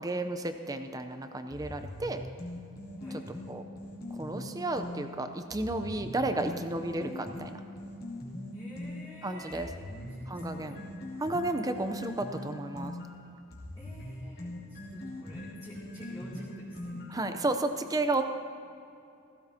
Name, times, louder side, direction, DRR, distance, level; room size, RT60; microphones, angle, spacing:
voice 1, 0.0-2.2 3.5-3.6 4.1-7.6 9.2-9.7 10.3-10.8 11.2-12.9 17.1-18.2, right 2 dB, 15° right, 7 dB, 0.5 m, -32 dB
sound 1, 1.5-5.0 5.5-9.0 9.5-17.3, left 1 dB, 45° left, 2.5 m, -41 dB
voice 2, 8.5-10.8 13.7-17.5, equal, 15° left, -11 dB, 2.5 m, -48 dB
16.0 x 16.0 x 2.8 m, 2.7 s
head